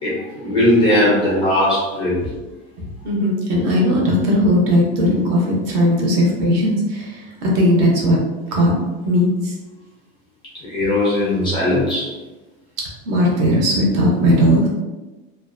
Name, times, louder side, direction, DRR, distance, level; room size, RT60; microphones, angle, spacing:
voice 1, 0.0-2.2 10.6-12.1, left 1 dB, 15° left, -7 dB, 0.4 m, -18 dB
voice 2, 3.0-8.2 8.5-8.7 9.0-9.5 13.0-14.7, equal, 50° right, -2 dB, 0.7 m, -17 dB
2.4 x 2.2 x 2.4 m, 1.2 s
supercardioid pair, 175°, 29 cm